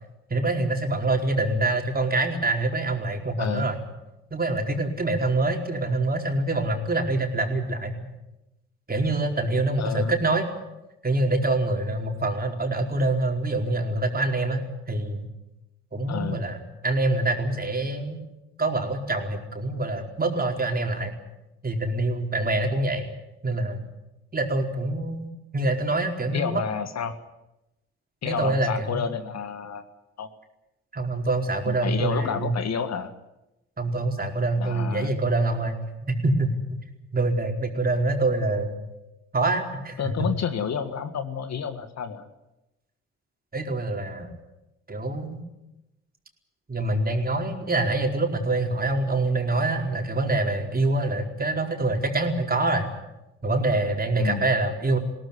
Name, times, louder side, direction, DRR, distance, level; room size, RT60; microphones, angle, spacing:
voice 1, 0.3-3.8 4.3-8.1 8.9-10.5 11.0-15.3 15.9-16.6 16.8-18.2 18.6-21.2 21.6-23.1 23.4-23.8 24.3-25.2 25.5-26.6 28.2-29.1 30.9-32.6 33.8-35.8 36.1-36.5 37.1-38.7 39.3-40.3 43.5-44.3 44.9-45.4 46.7-52.9 53.4-55.0, right 2 dB, 25° right, 2 dB, 4.5 m, -25 dB
voice 2, 3.4-3.7 9.8-10.2 16.1-16.4 26.3-27.2 28.2-29.9 30.2-30.3 31.7-33.1 34.6-35.1 40.0-42.3 54.2-54.5, left 7 dB, 50° left, 9 dB, 1.9 m, -30 dB
21.0 x 17.5 x 9.9 m, 0.95 s
hypercardioid pair, 45°, 33 cm